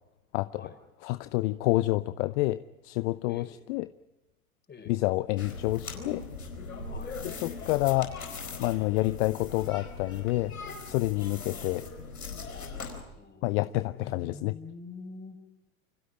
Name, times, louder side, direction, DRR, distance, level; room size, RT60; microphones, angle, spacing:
voice 1, 1.0-3.9 4.9-6.2 7.2-8.1 8.6-10.5 10.8-11.9 13.4-14.6, left 19 dB, 55° left, 14 dB, 0.9 m, -28 dB
voice 2, 4.7-5.0 6.8-7.2 13.1-15.4, left 4 dB, 25° left, 7 dB, 5.1 m, -46 dB
sound 1, 5.4-13.0, left 4 dB, 85° left, 4.6 m, -40 dB
28.5 x 26.0 x 5.0 m, 1.0 s
hypercardioid pair, 85°, 42 cm